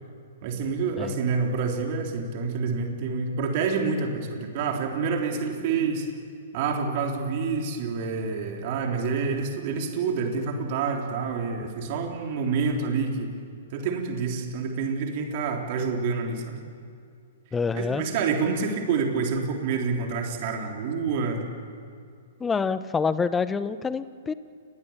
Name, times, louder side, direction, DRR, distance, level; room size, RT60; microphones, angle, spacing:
voice 1, 0.4-6.1 6.5-13.3 13.7-16.6 17.7-21.4, right 5 dB, 40° right, 2 dB, 3.7 m, -27 dB
voice 2, 17.5-18.0 22.4-24.3, left 5 dB, 10° left, 15 dB, 0.9 m, -26 dB
30.0 x 20.5 x 7.3 m, 2.3 s
figure-of-eight pair, 110°, 0 cm